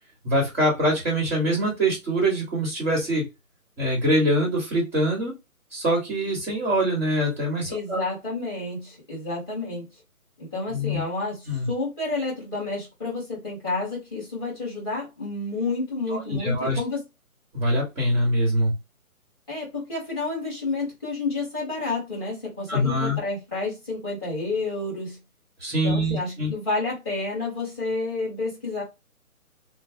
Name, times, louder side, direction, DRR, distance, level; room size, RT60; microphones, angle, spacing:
voice 1, 0.2-3.2 3.8-5.3 5.7-8.0 10.7-11.0 11.5-11.7 16.1-16.8 17.5-18.7 22.7-23.2 25.6-26.5, equal, 10° right, 0.9 m, -24 dB
voice 2, 7.7-9.9 10.4-17.0 19.5-25.2 25.8-28.8, left 3 dB, 15° left, 1.4 m, -30 dB
3.0 x 2.2 x 2.7 m
hypercardioid pair, 170°, 43 cm